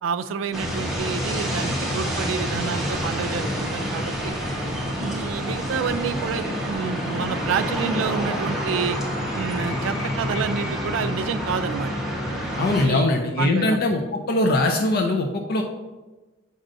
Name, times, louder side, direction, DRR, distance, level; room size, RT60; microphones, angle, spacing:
voice 1, 0.0-4.3 5.0-9.0 9.3-11.9 12.4-13.8, right 6 dB, 85° right, 11 dB, 0.3 m, -29 dB
sound 1, 0.5-12.8, equal, ahead, 1.0 m, -27 dB
voice 2, 12.6-14.0 14.3-15.6, left 2 dB, 55° left, 3 dB, 0.5 m, -21 dB
7.4 x 5.3 x 2.6 m, 1.2 s
head